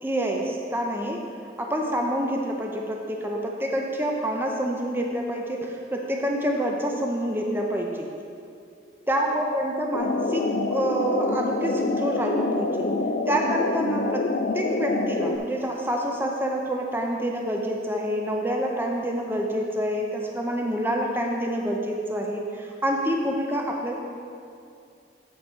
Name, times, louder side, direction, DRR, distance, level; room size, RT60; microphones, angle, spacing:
voice 1, 0.0-1.3 1.6-8.1 9.1-12.9 13.3-23.9, equal, 10° right, 0 dB, 0.5 m, -27 dB
sound 1, 9.9-15.4, left 3 dB, 50° left, 0.4 m, -26 dB
8.5 x 5.3 x 4.6 m, 2.5 s
head